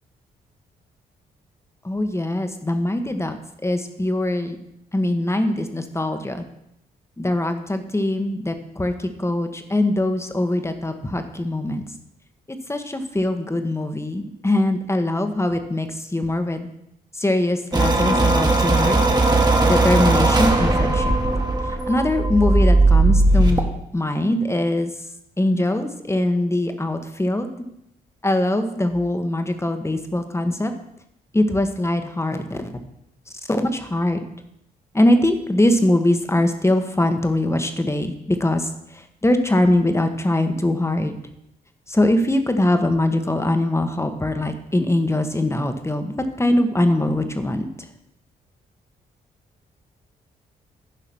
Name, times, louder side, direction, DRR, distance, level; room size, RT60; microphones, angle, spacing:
voice 1, 1.8-3.4 3.6-4.6 4.9-6.4 7.2-11.8 12.7-16.7 17.2-19.0 19.6-21.1 21.9-23.7 23.9-24.9 25.4-27.5 28.2-30.7 31.3-32.8 33.5-34.2 34.9-38.7 39.2-41.1 41.9-47.7, left 1 dB, 15° left, 7 dB, 1.3 m, -22 dB
sound 1, 17.7-23.6, right 2 dB, 25° right, 1.7 m, -17 dB
11.5 x 4.8 x 6.0 m, 0.79 s
supercardioid pair, 50°, 18 cm